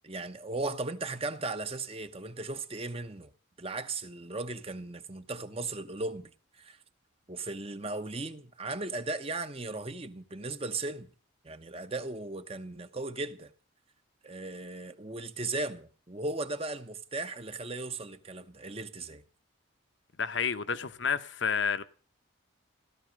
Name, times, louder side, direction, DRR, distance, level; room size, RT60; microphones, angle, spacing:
voice 1, 0.0-3.3 3.6-6.3 6.6-6.8 7.3-11.1 11.4-13.5 14.2-19.2, right 2 dB, 30° right, 1.0 m, -37 dB
voice 2, 20.2-21.8, left 6 dB, 60° left, 1.0 m, -30 dB
16.0 x 12.5 x 6.5 m
head